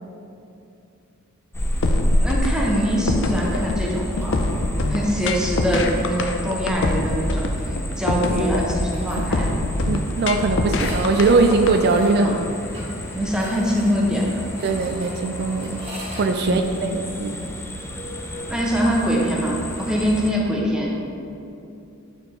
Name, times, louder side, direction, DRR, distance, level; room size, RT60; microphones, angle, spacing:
sound 1, 1.5-20.3, equal, 10° left, 0.6 m, -31 dB
sound 2, 1.8-11.8, left 2 dB, 60° left, 0.6 m, -24 dB
voice 1, 2.2-4.4 4.9-7.4 8.0-9.5 12.1-12.4 13.1-14.5 16.4-16.9 18.5-20.9, equal, 5° right, -3 dB, 1.1 m, -23 dB
sound 3, 8.6-9.2 9.5-9.6 9.8-9.9 10.7-16.3, right 1 dB, 30° right, 1.6 m, -39 dB
voice 2, 9.9-12.4 14.6-15.9 16.1-17.4, right 3 dB, 50° right, 5 dB, 0.3 m, -21 dB
8.7 x 4.6 x 4.5 m, 2.7 s
head